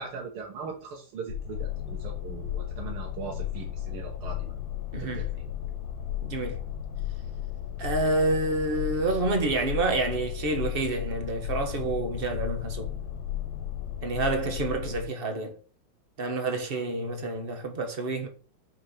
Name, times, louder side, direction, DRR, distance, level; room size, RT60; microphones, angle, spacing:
voice 1, 0.0-4.5 5.0-5.3, right 5 dB, 85° right, 2.0 m, -40 dB
sound 1, 1.3-15.0, left 11 dB, 65° left, 2.0 m, -34 dB
voice 2, 4.9-5.3 6.2-6.6 7.8-12.9 14.0-15.6 16.2-18.3, right 2 dB, 35° right, 1.1 m, -28 dB
5.9 x 4.7 x 5.6 m
omnidirectional pair, 2.3 m